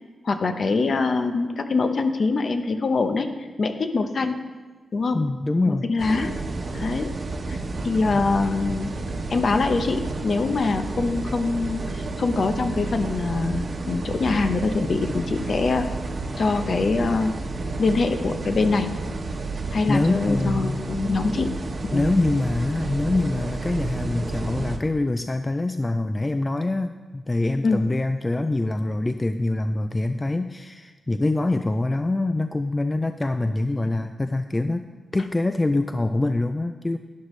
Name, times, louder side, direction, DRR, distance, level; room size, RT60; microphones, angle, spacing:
voice 1, 0.2-3.3 3.6-4.4 4.9-5.2 5.7-6.3 6.7-7.1 7.5-7.6 7.8-8.9 9.3-15.8 16.4-17.3 17.8-18.9 19.7-21.5 21.9-22.0 27.6-27.8, left 3 dB, 50° left, 7 dB, 0.8 m, -23 dB
voice 2, 5.1-5.9 19.9-20.8 21.9-34.8 35.1-37.0, left 2 dB, 20° left, 8 dB, 0.4 m, -24 dB
sound 1, 6.0-24.8, right 3 dB, 40° right, 1.1 m, -31 dB
11.5 x 11.5 x 3.2 m, 1.3 s
wide cardioid pair, 125°, 0 cm